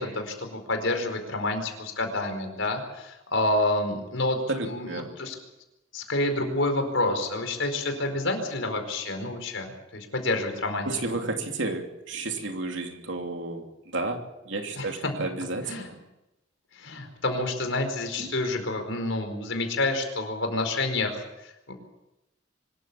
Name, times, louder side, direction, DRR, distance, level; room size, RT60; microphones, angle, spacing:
voice 1, 0.0-5.4 5.9-11.2 14.7-15.1 15.6-15.9 16.7-21.7, left 2 dB, 70° left, 5 dB, 4.7 m, -29 dB
voice 2, 4.5-5.1 10.8-13.6 13.9-14.2 14.5-16.0, right 2 dB, 65° right, 4 dB, 3.0 m, -31 dB
24.5 x 14.0 x 8.7 m, 0.95 s
head